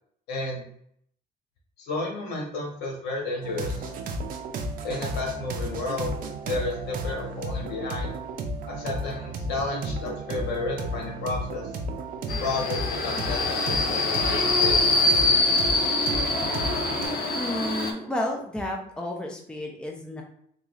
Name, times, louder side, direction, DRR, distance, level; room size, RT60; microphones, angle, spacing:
voice 1, 0.3-0.6 1.8-3.9 4.8-6.2 6.4-8.1 8.7-11.7 12.4-14.8, left 3 dB, 80° left, -1 dB, 1.4 m, -32 dB
sound 1, 3.4-17.1, right 2 dB, 55° right, 0.6 m, -33 dB
Subway metro underground, 12.3-17.9, left 2 dB, 60° left, 0.7 m, -24 dB
voice 2, 17.3-20.2, left 1 dB, 5° left, 1 dB, 0.6 m, -31 dB
3.7 x 2.4 x 3.1 m, 0.67 s
cardioid pair, 110°, 17 cm